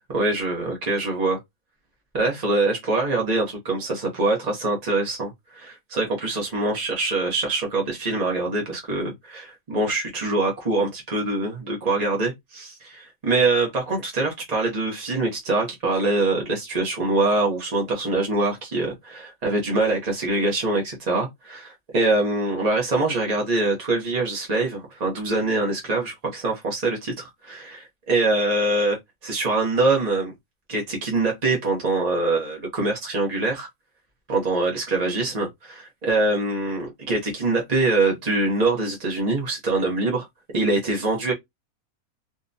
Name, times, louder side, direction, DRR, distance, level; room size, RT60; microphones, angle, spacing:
voice 1, 0.1-1.4 2.1-29.0 29.2-30.3 30.7-33.7 34.3-40.3 40.5-41.3, right 2 dB, 35° right, 0.8 m, -24 dB
3.7 x 2.2 x 2.6 m
omnidirectional pair, 1.6 m